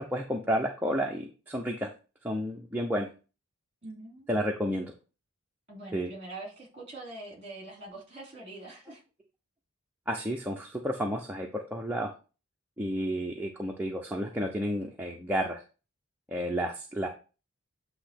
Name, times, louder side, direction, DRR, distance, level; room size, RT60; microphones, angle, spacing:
voice 1, 0.0-1.9 2.2-3.1 4.3-4.9 5.9-6.1 10.1-12.1 12.8-15.6 16.3-17.1, equal, 10° right, 0 dB, 0.6 m, -31 dB
voice 2, 3.8-4.3 5.7-9.0, right 2 dB, 25° right, -1 dB, 3.0 m, -44 dB
8.4 x 2.9 x 5.7 m, 0.34 s
head